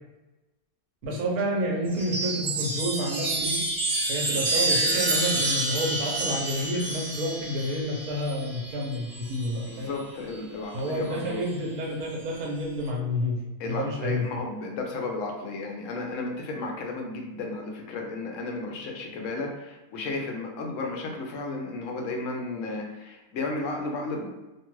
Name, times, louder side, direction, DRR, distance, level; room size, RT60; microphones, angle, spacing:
voice 1, 1.0-3.7 4.1-9.9 10.7-13.4 13.6-14.2, equal, 75° right, -1 dB, 1.2 m, -29 dB
Chime, 1.9-9.7 10.9-11.5, right 2 dB, 50° right, 1.1 m, -29 dB
voice 2, 9.7-11.4 13.6-24.3, left 3 dB, 65° left, 2 dB, 0.8 m, -33 dB
2.8 x 2.3 x 3.0 m, 1.0 s
omnidirectional pair, 1.6 m